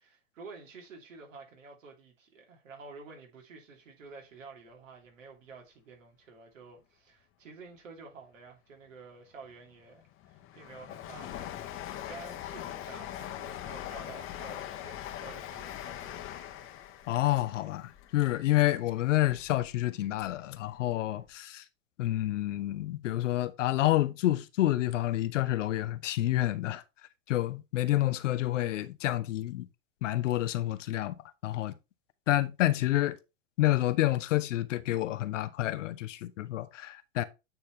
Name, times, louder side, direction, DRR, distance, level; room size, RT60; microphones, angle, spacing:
voice 1, 0.0-16.3, right 4 dB, 70° right, 3.0 m, -50 dB
Train, 9.5-19.7 20.1-21.0 21.3-21.4, left 11 dB, 30° left, 1.1 m, -42 dB
voice 2, 17.1-21.6 22.0-26.8 27.3-29.7 30.0-31.1 31.4-31.7 32.3-33.2 33.6-37.2, left 15 dB, 65° left, 0.9 m, -28 dB
8.9 x 4.2 x 3.2 m
hypercardioid pair, 110°, 40 cm